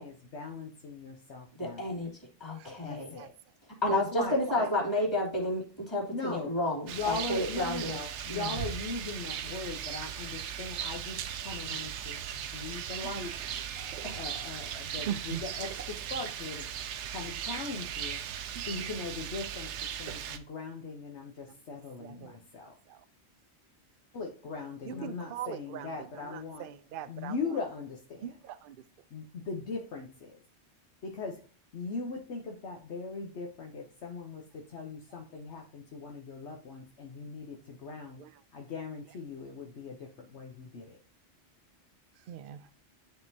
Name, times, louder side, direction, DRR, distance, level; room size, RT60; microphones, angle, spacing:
voice 1, 0.0-1.8 2.6-3.3 3.9-4.7 6.1-6.5 6.9-12.2 12.5-13.3 13.8-16.7 17.1-18.2 18.6-19.7 20.0-22.7 24.1-26.7 27.1-28.3 29.1-30.4 31.0-31.4 31.7-38.2 38.5-41.0, left 4 dB, 75° left, 1.2 m, -39 dB
voice 2, 1.6-2.1 2.4-3.1 3.8-8.0 8.3-8.5 14.0-14.2 24.9-25.2, left 1 dB, 25° left, 2.7 m, -31 dB
voice 3, 4.5-4.9 15.1-15.5 22.0-22.4 22.9-23.0 24.9-27.6 28.2-28.8 38.2-38.3 42.3-42.6, right 10 dB, 60° right, 0.6 m, -41 dB
Rain, 6.9-20.4, right 9 dB, 90° right, 0.9 m, -38 dB
11.5 x 3.8 x 2.7 m
omnidirectional pair, 1.2 m